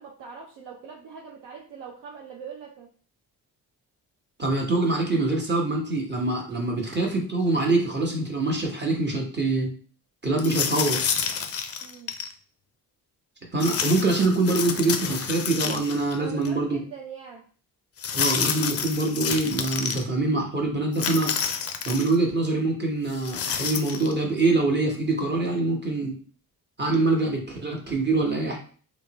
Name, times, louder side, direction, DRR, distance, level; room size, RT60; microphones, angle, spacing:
voice 1, 0.0-2.9 11.8-12.1 16.2-17.4, right 6 dB, 70° right, -1 dB, 0.6 m, -42 dB
voice 2, 4.4-9.7 10.2-11.0 13.5-16.8 18.1-21.3 21.8-26.1 26.8-28.6, right 2 dB, 25° right, 0 dB, 1.1 m, -24 dB
sound 1, 10.4-12.3 13.6-16.1 16.4-16.5 18.0-20.0 20.9-22.1 23.1-24.1, left 7 dB, 35° left, 0.4 m, -29 dB
3.1 x 2.0 x 2.9 m, 0.42 s
hypercardioid pair, 45°, 43 cm